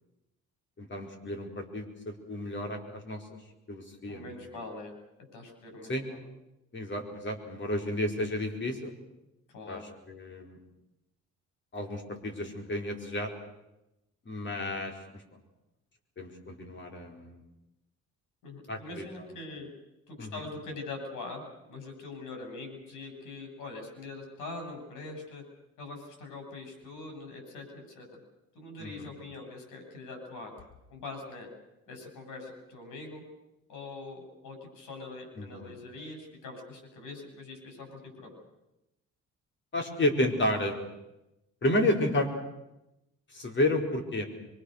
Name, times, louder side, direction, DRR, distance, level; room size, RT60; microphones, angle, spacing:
voice 1, 0.8-3.2 3.7-4.3 5.9-6.0 6.7-8.9 9.7-9.8 10.1-10.6 11.7-13.3 14.3-15.2 16.2-17.4 18.7-19.0 20.2-20.4 28.8-29.1 35.4-35.7 39.7-40.8 41.6-42.3 43.3-44.3, left 1 dB, 40° left, 3 dB, 4.6 m, -31 dB
voice 2, 4.0-4.9 5.3-6.2 9.5-9.8 18.4-19.7 20.1-21.4 21.7-25.4 25.8-28.2 28.5-30.5 30.9-31.5 31.9-33.2 33.7-38.3, left 3 dB, 90° left, 3 dB, 7.5 m, -43 dB
24.0 x 24.0 x 6.6 m, 0.93 s
cardioid pair, 90°, 30 cm